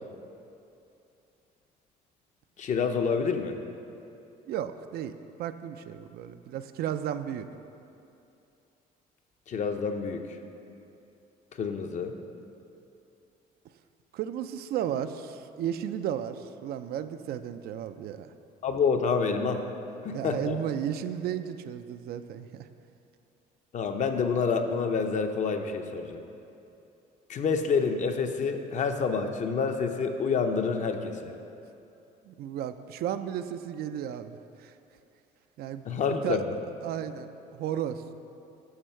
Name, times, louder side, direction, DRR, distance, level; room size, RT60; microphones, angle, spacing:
voice 1, 2.6-3.6 9.5-10.4 11.5-12.2 18.6-19.6 20.0-20.6 23.7-26.2 27.3-31.3 35.9-36.4, left 5 dB, 45° left, 6 dB, 0.6 m, -28 dB
voice 2, 4.5-7.5 14.1-18.3 20.1-22.7 32.2-34.7 35.6-36.4 36.8-38.0, right 10 dB, 65° right, 10 dB, 0.4 m, -34 dB
11.5 x 4.6 x 4.4 m, 2.7 s
cardioid pair, 110°, 17 cm